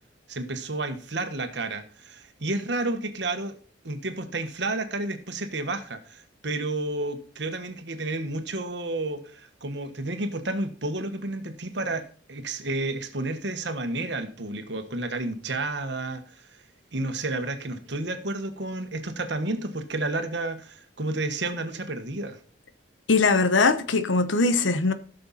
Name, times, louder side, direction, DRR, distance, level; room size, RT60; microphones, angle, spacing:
voice 1, 0.3-3.6 3.8-16.2 16.9-22.4, right 2 dB, 65° right, 1.4 m, -31 dB
voice 2, 23.1-24.9, left 3 dB, 80° left, 0.9 m, -21 dB
15.5 x 6.6 x 4.2 m
head